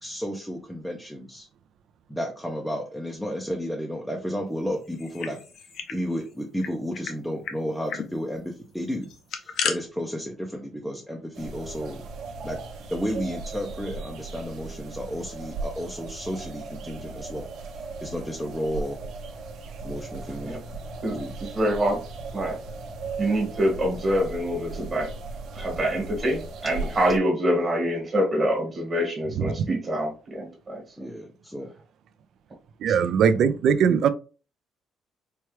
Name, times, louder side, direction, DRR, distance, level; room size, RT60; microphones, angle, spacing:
voice 1, 0.0-1.5 2.1-5.4 5.9-9.1 9.4-12.0 12.4-12.6 12.9-17.5 18.0-19.0 19.8-20.6 21.1-21.3 31.0-31.7, equal, ahead, 0.5 m, -32 dB
sound 1, 4.9-6.0 6.3-6.4 6.6-7.1 7.4-7.6 7.9-8.1 9.0-9.8, left 6 dB, 60° left, 0.6 m, -32 dB
sound 2, 11.3-27.2, right 3 dB, 85° right, 0.9 m, -37 dB
voice 2, 21.0-22.0 22.3-22.6 23.2-25.1 25.5-30.8 32.9-33.0, equal, 30° right, 1.3 m, -25 dB
voice 3, 32.8-34.1, right 7 dB, 60° right, 0.4 m, -20 dB
4.3 x 2.3 x 3.1 m
cardioid pair, 180°, 0 cm